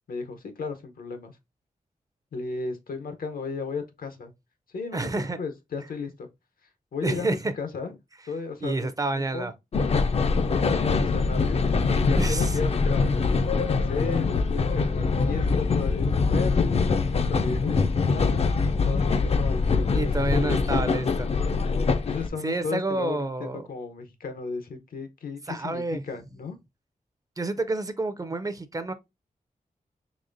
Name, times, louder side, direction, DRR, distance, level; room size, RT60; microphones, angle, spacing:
voice 1, 0.1-1.4 2.3-4.3 4.7-6.3 6.9-7.9 8.3-8.9 9.1-9.5 10.4-11.7 12.0-13.2 13.5-20.6 22.0-26.6, left 4 dB, 85° left, 0.8 m, -35 dB
voice 2, 4.9-5.4 7.0-7.5 8.6-9.5 12.1-12.6 19.9-21.3 22.4-23.7 25.5-26.0 27.4-28.9, right 2 dB, 25° right, 0.4 m, -29 dB
sound 1, 9.7-22.3, left 4 dB, 45° left, 0.4 m, -23 dB
4.0 x 3.2 x 2.5 m
wide cardioid pair, 105°, 15 cm